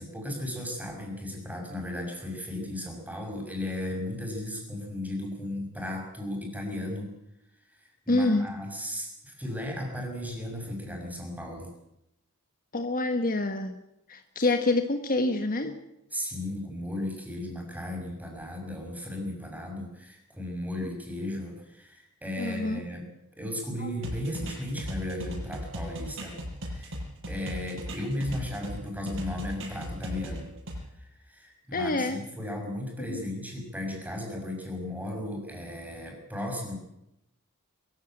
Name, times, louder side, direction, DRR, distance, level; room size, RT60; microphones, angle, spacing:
voice 1, 0.0-7.1 7.7-11.7 14.4-14.5 16.1-23.1 23.4-26.3 26.6-27.0 27.3-30.5 31.0-36.8, left 1 dB, 5° right, 2 dB, 6.1 m, -35 dB
voice 2, 8.1-8.5 12.7-13.8 14.1-15.7 22.4-22.8 23.8-23.9 31.7-32.2 33.1-33.2, left 2 dB, 40° left, 7 dB, 1.3 m, -27 dB
sound 1, 24.0-28.8 29.1-30.8, equal, 60° right, 6.9 m, -37 dB
22.5 x 15.0 x 9.0 m, 0.85 s
head